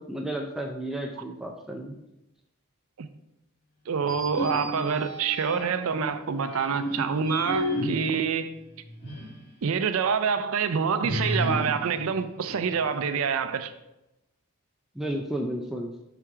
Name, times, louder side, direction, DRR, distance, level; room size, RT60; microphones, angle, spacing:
voice 1, 0.0-2.0 15.0-15.9, right 1 dB, ahead, 0.4 m, -32 dB
voice 2, 3.9-8.5 9.6-13.7, right 6 dB, 70° right, 0.5 m, -26 dB
sound 1, 4.0-5.9 6.5-9.4 9.8-9.9 11.0-13.1, equal, 50° left, 1.8 m, -32 dB
5.8 x 4.5 x 3.6 m
head